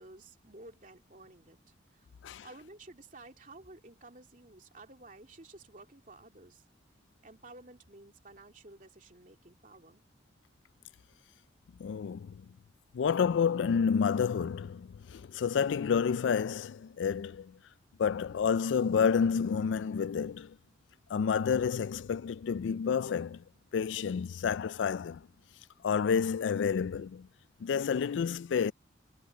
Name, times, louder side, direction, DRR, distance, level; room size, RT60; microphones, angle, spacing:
voice 1, 0.0-1.6 1.9-2.1 2.4-6.6 7.2-10.0, right 2 dB, 45° right, 2.9 m, -53 dB
voice 2, 11.8-12.4 12.9-17.6 18.0-20.6 21.1-23.4 23.7-25.3 25.8-27.3 27.6-28.7, left 6 dB, 75° left, 0.3 m, -29 dB
head